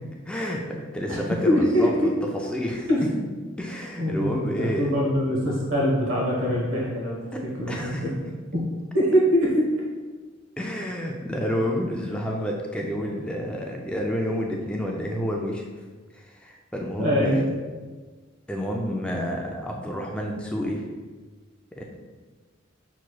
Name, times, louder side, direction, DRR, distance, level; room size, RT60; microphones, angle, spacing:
voice 1, 0.3-2.1 2.5-2.9 3.6-5.0 7.3-8.0 10.6-15.7 16.1-17.4 18.5-20.9 21.7-21.8, equal, 5° left, -1 dB, 0.3 m, -29 dB
voice 2, 1.4-2.1 2.9-3.4 4.0-8.1 8.5-8.6 8.9-9.7 17.0-17.4, equal, 90° right, -4 dB, 1.1 m, -23 dB
6.1 x 3.0 x 2.2 m, 1.4 s
head